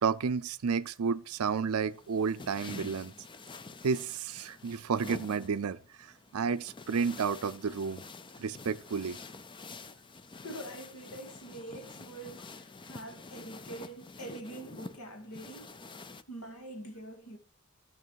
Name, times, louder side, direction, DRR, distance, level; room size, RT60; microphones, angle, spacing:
voice 1, 0.0-3.1 3.8-8.0 8.4-9.2, right 5 dB, 75° right, 0.5 m, -31 dB
sound 1, 1.3-16.2, left 3 dB, 20° left, 0.5 m, -48 dB
voice 2, 10.4-15.8 16.3-17.4, right 1 dB, 85° left, 2.2 m, -45 dB
13.5 x 6.1 x 4.6 m
head